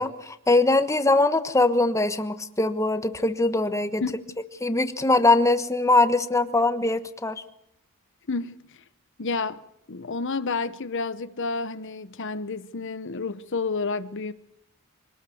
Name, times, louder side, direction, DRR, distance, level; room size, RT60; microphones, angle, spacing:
voice 1, 0.0-4.0 4.6-7.4, left 2 dB, 15° left, 1.3 m, -22 dB
voice 2, 8.3-8.6 9.2-9.6 9.9-14.3, left 4 dB, 55° left, 0.9 m, -30 dB
24.5 x 19.0 x 7.9 m
head